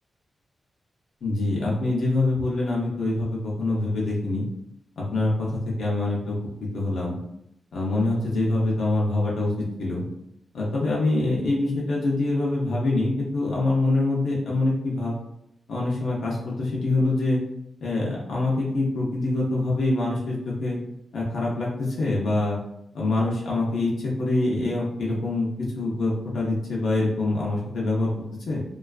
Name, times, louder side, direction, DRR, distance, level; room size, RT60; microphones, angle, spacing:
voice 1, 1.2-4.4 5.0-7.2 7.7-10.0 10.5-15.1 15.7-17.4 17.8-20.8 21.1-22.6 22.9-28.1 28.5-28.6, left 2 dB, 75° left, -4 dB, 0.6 m, -25 dB
2.4 x 2.3 x 2.3 m, 0.78 s
wide cardioid pair, 170°, 0 cm